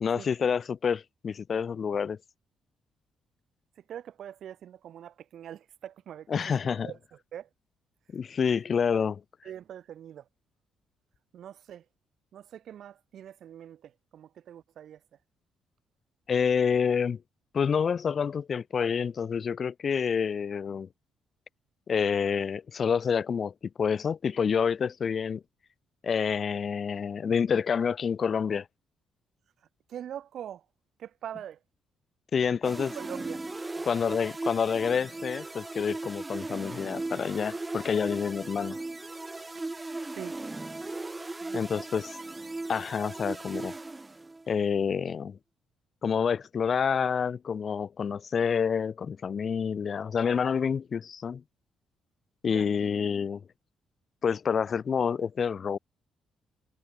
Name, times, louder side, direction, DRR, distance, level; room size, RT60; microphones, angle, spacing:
voice 1, 0.0-2.2 6.3-6.9 8.1-9.2 16.3-17.2 17.5-20.9 21.9-25.4 26.0-28.7 32.3-32.9 33.8-38.8 41.5-42.2 42.7-43.7 44.5-45.4 46.0-51.4 52.4-53.4 54.2-55.8, left 6 dB, 45° left, 0.3 m, -28 dB
voice 2, 3.8-6.5 6.8-7.5 9.0-9.1 9.4-10.3 11.3-11.9 12.3-15.0 29.9-30.7 31.0-31.6 32.4-33.5 33.8-33.9 40.1-40.4 41.4-41.8 52.4-52.7, right 10 dB, 70° right, 1.9 m, -43 dB
sound 1, 32.6-44.5, right 2 dB, 20° right, 1.2 m, -37 dB
cardioid pair, 90°, 0 cm